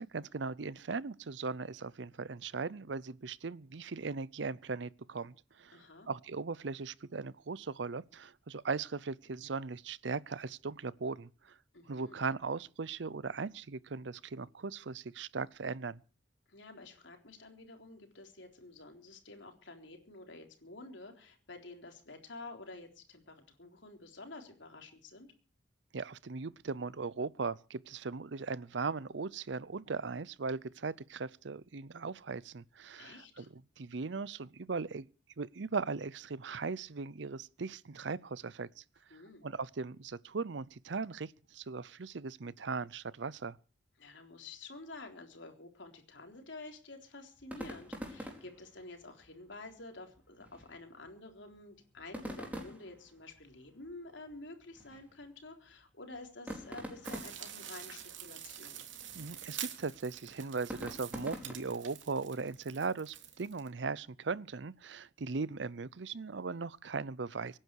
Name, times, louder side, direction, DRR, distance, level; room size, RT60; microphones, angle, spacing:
voice 1, 0.0-5.8 6.1-11.5 11.9-16.0 25.9-33.4 33.8-35.0 35.4-38.8 39.1-43.6 59.1-67.6, right 4 dB, 75° right, 0.6 m, -38 dB
voice 2, 5.7-6.1 11.7-12.2 16.5-25.3 32.9-33.5 39.1-39.5 44.0-58.8, left 2 dB, 80° left, 3.8 m, -50 dB
sound 1, 47.4-62.0, equal, 10° right, 4.4 m, -48 dB
sound 2, 57.0-63.7, right 10 dB, 90° right, 3.0 m, -47 dB
25.0 x 10.5 x 4.7 m
head